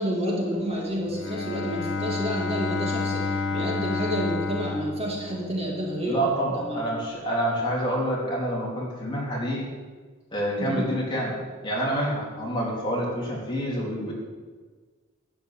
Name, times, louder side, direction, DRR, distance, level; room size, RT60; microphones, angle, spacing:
voice 1, 0.0-6.2 6.5-6.9 10.6-10.9, equal, 30° right, -3 dB, 2.2 m, -29 dB
Bowed string instrument, 1.0-5.9, left 4 dB, 60° left, 0.9 m, -30 dB
voice 2, 6.0-9.6 10.3-14.1, right 1 dB, 25° left, -5 dB, 3.3 m, -27 dB
12.0 x 5.5 x 8.1 m, 1.4 s
head